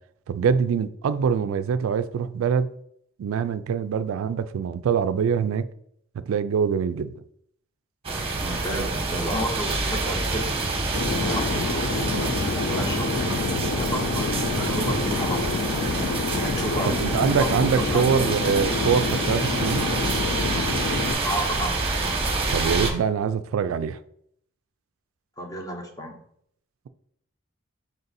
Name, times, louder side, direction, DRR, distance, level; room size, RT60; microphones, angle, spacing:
voice 1, 0.3-2.7 3.2-5.6 6.3-7.1 16.9-19.9 22.5-24.0, right 6 dB, 75° right, 0.3 m, -24 dB
sound 1, 8.0-22.9, right 3 dB, 30° right, 0.8 m, -27 dB
voice 2, 8.4-10.5 11.1-13.2 13.8-17.2 17.8-18.1 21.2-21.9 25.4-26.2, equal, 20° left, 0.6 m, -32 dB
Fixed-wing aircraft airplane, 10.9-21.1, left 4 dB, 55° left, 0.3 m, -28 dB
5.0 x 2.6 x 4.0 m
head